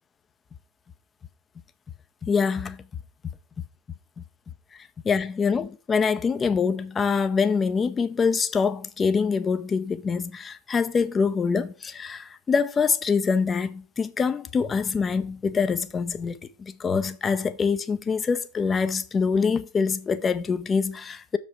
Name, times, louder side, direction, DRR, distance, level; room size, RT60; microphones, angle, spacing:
voice 1, 2.2-2.8 5.1-21.4, left 5 dB, 20° left, 0.5 m, -25 dB
6.7 x 5.2 x 4.6 m
figure-of-eight pair, 90°, 0 cm